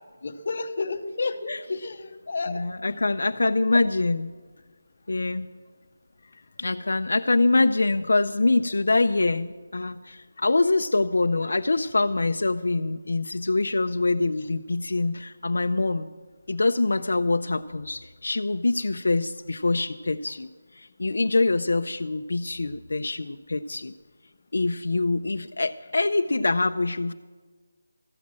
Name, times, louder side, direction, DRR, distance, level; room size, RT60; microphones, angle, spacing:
voice 1, 0.2-2.6 3.4-3.5, left 3 dB, 45° left, 7 dB, 0.8 m, -31 dB
voice 2, 2.5-4.3 5.1-5.5 6.6-16.1 16.5-23.9 24.5-27.1, left 3 dB, 75° left, 9 dB, 0.4 m, -24 dB
14.0 x 7.3 x 7.5 m, 1.4 s
figure-of-eight pair, 180°, 0 cm